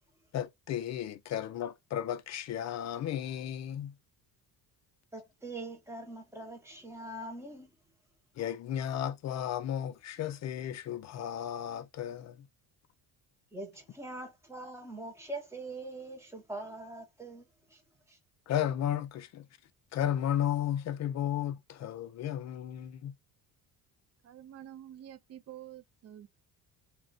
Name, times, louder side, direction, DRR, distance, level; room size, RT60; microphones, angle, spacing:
voice 1, 0.3-3.9 8.4-12.5 18.5-19.5 19.9-23.1, left 10 dB, 45° left, 0.4 m, -34 dB
voice 2, 5.1-7.7 13.5-17.8 18.1-18.2, right 2 dB, 5° right, 0.8 m, -43 dB
voice 3, 24.2-26.3, right 11 dB, 40° right, 0.5 m, -48 dB
2.4 x 2.3 x 3.9 m
cardioid pair, 120°, 41 cm